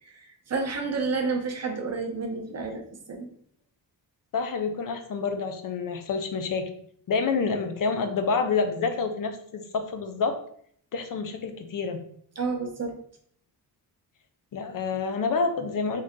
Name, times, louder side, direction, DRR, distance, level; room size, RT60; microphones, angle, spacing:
voice 1, 0.0-2.8 3.1-3.3 12.4-12.9, right 4 dB, 40° right, 2 dB, 0.7 m, -30 dB
voice 2, 4.3-6.7 7.1-10.4 10.9-12.0 14.5-16.0, left 4 dB, 55° left, 7 dB, 0.5 m, -28 dB
3.7 x 2.7 x 3.6 m, 0.62 s
wide cardioid pair, 150°, 42 cm